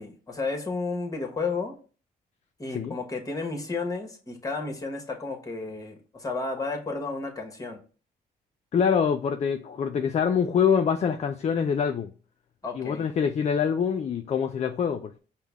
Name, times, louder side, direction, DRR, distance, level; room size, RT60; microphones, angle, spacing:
voice 1, 0.0-1.7 2.6-7.8 12.6-13.1, left 3 dB, 20° left, 1.2 m, -32 dB
voice 2, 8.7-12.1 12.7-15.2, left 7 dB, 40° left, 0.4 m, -25 dB
5.4 x 2.2 x 3.5 m
cardioid pair, 75°, 17 cm